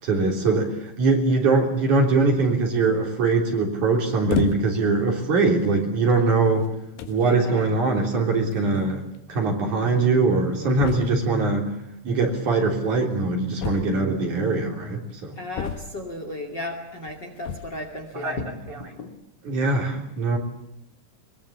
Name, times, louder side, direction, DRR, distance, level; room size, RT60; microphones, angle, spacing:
voice 1, 0.0-6.7 7.1-9.0 9.3-11.7 12.0-15.4 18.1-18.4 19.4-20.4, right 3 dB, 50° right, 2 dB, 4.7 m, -22 dB
sound 1, 4.3-4.9 5.7-5.8 6.6-6.7 7.0-7.3 8.5-8.6 8.8-8.9 9.1-9.2 10.8-11.3 13.6-14.3 15.5-16.2 17.4-17.8, left 7 dB, 80° left, 3.5 m, -30 dB
voice 2, 7.2-7.7 15.4-19.1, left 2 dB, 30° left, 4 dB, 2.7 m, -35 dB
22.5 x 22.5 x 8.6 m, 0.79 s
omnidirectional pair, 4.6 m